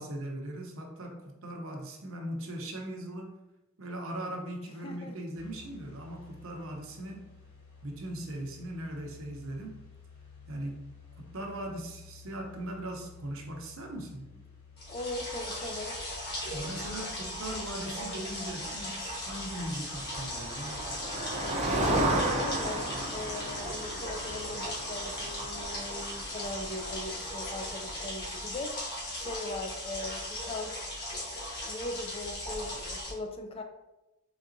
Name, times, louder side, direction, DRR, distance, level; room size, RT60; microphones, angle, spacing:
voice 1, 0.0-3.4 3.8-7.2 7.8-9.8 10.5-10.9 11.2-14.3 16.5-20.9, right 1 dB, 65° right, 2 dB, 0.7 m, -39 dB
voice 2, 4.8-5.2 14.9-15.9 21.7-22.9 23.1-28.8 29.1-30.7 31.6-33.6, left 2 dB, 25° left, 4 dB, 0.4 m, -39 dB
sound 1, 5.3-24.6, left 5 dB, 90° left, 1.1 m, -54 dB
sound 2, 14.8-33.1, left 1 dB, 50° left, 1.2 m, -38 dB
Motor vehicle (road), 19.8-27.6, right 1 dB, 30° right, 0.6 m, -34 dB
3.9 x 3.4 x 2.6 m, 0.96 s
head